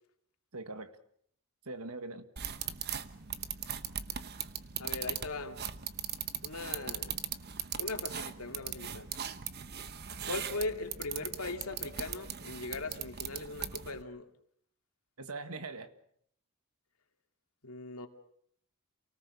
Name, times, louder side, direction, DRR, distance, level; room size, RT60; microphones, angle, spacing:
voice 1, 0.5-0.9 1.7-2.3 15.2-15.9, right 3 dB, 85° right, 10 dB, 1.7 m, -41 dB
sound 1, 2.4-14.0, right 9 dB, 50° right, 1.0 m, -39 dB
voice 2, 4.8-5.6 6.4-7.2 7.8-9.1 10.3-14.3 17.6-18.1, left 2 dB, 80° left, 5 dB, 2.4 m, -39 dB
28.5 x 18.5 x 6.9 m, 0.67 s
head